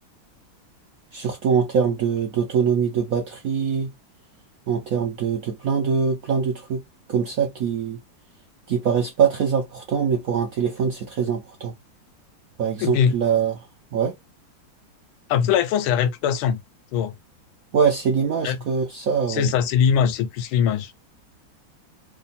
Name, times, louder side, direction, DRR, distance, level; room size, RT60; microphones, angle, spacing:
voice 1, 1.1-3.9 4.7-6.8 7.1-8.0 8.7-11.7 12.6-13.6 13.9-14.2 17.7-19.5, right 6 dB, 70° right, 0.8 m, -23 dB
voice 2, 12.8-13.1 15.3-16.6 16.9-17.2 18.4-18.6 19.3-20.9, left 8 dB, 90° left, 1.5 m, -21 dB
3.4 x 2.3 x 4.0 m
omnidirectional pair, 2.2 m